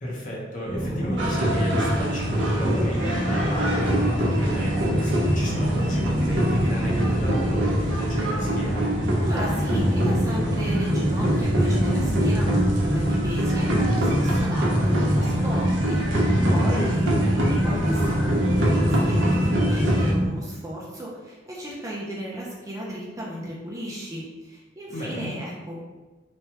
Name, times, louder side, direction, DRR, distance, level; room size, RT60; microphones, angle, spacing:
voice 1, 0.0-8.9 16.6-16.9 24.9-25.3, equal, 45° left, -4 dB, 0.8 m, -32 dB
sound 1, 0.6-20.3, equal, 80° left, 1.0 m, -25 dB
sound 2, 1.2-20.1, right 1 dB, 85° right, 0.6 m, -26 dB
voice 2, 9.2-25.8, equal, 20° right, -4 dB, 0.4 m, -35 dB
3.1 x 2.2 x 2.8 m, 1.2 s
head